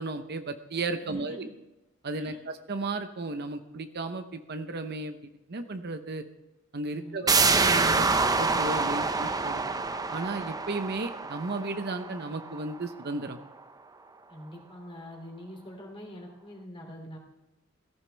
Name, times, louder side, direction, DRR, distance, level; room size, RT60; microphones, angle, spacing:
voice 1, 0.0-1.5 2.0-6.2 6.7-7.3 7.6-9.9 10.1-13.4, right 3 dB, 55° right, 8 dB, 0.8 m, -34 dB
voice 2, 1.0-1.5 2.1-2.4 7.0-7.3 14.3-17.2, equal, 25° left, 1 dB, 2.7 m, -45 dB
sound 1, 7.3-12.7 13.1-13.2, right 4 dB, 20° right, 0.6 m, -26 dB
16.5 x 14.5 x 3.4 m, 0.98 s
head